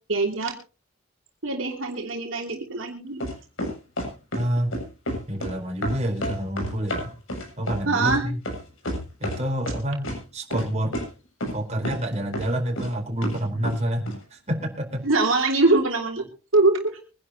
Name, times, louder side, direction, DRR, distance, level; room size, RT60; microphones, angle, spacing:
voice 1, 0.1-0.5 1.4-3.2 7.9-8.2 15.0-16.2 16.5-17.0, right 2 dB, 65° right, 1 dB, 3.1 m, -22 dB
sound 1, 3.2-4.4 4.7-5.5 5.8-9.4 9.7-10.2 10.5-10.7 10.9-11.0 11.4-11.6 11.8-12.0 12.3-12.9 13.2-13.8 14.1-14.2, equal, 70° left, 7.5 m, -30 dB
voice 2, 4.3-4.7 5.3-7.1 7.6-8.4 9.2-11.0 11.5-15.0, equal, 30° right, 2 dB, 4.2 m, -28 dB
24.0 x 11.0 x 2.9 m, 0.33 s
head